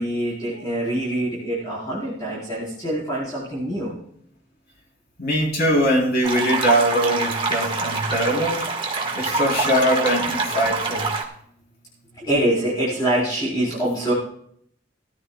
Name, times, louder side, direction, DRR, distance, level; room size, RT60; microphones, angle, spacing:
voice 1, 0.0-3.9 9.0-10.1 12.2-14.1, right 1 dB, 20° left, -7 dB, 3.6 m, -25 dB
voice 2, 5.2-8.7 9.2-11.1, equal, 55° left, -1 dB, 3.6 m, -21 dB
sound 1, 6.2-11.2, right 3 dB, 25° right, 1.5 m, -25 dB
19.0 x 13.5 x 2.2 m, 0.65 s
head